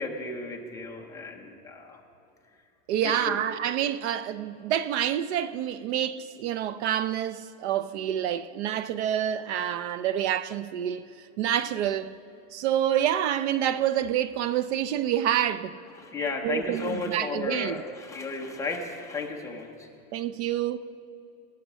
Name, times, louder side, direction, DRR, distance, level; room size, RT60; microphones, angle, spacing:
voice 1, 0.0-2.0 3.0-3.4 16.0-19.9, left 3 dB, 5° left, 0.6 m, -34 dB
voice 2, 2.9-11.0 11.4-12.1 12.5-15.8 16.4-17.8 20.1-20.8, right 10 dB, 55° right, 0.5 m, -27 dB
18.0 x 7.0 x 6.3 m
supercardioid pair, 170°, 42 cm